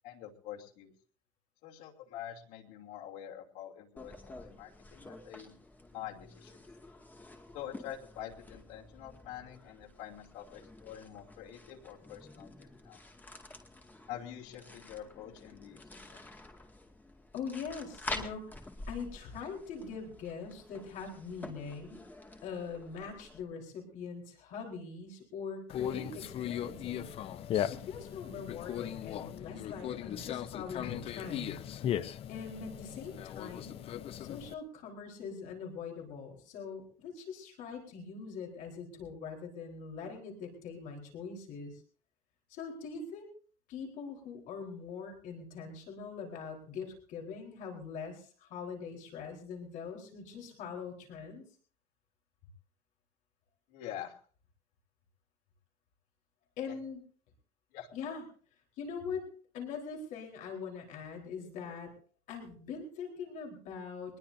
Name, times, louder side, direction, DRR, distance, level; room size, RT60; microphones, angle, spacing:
voice 1, 0.0-0.9 1.6-5.5 5.9-6.6 7.5-13.0 14.1-16.3 53.7-54.2 56.7-56.8 57.7-57.9, left 11 dB, 80° left, 0 dB, 3.0 m, -46 dB
sound 1, 4.0-23.4, left 2 dB, 10° left, 2.1 m, -49 dB
voice 2, 17.3-18.4 18.9-22.0 22.4-27.1 27.7-31.6 32.3-33.8 34.2-41.8 42.5-43.3 43.7-51.4 56.6-57.0 57.9-58.2 58.8-59.3 59.5-61.9 62.3-64.2, left 5 dB, 55° left, 1 dB, 4.2 m, -42 dB
Conversation, 25.7-34.5, left 10 dB, 40° left, 0.7 m, -38 dB
23.0 x 20.5 x 2.7 m, 0.44 s
cardioid pair, 160°, 16 cm